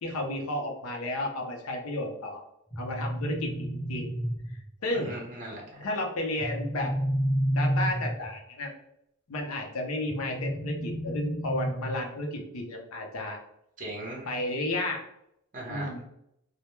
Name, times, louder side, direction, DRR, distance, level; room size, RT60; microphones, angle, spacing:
voice 1, 0.0-2.4 2.8-4.1 4.8-5.1 5.8-6.9 7.5-8.7 9.3-13.4 14.3-15.0 15.7-16.0, left 1 dB, 70° left, 2 dB, 0.6 m, -32 dB
sound 1, 2.7-4.7 6.4-8.4 10.1-12.1, equal, 15° left, 0.8 m, -30 dB
voice 2, 4.9-5.8 13.8-14.4 15.5-16.0, right 1 dB, 40° right, -3 dB, 0.8 m, -38 dB
2.1 x 2.1 x 2.9 m, 0.78 s
head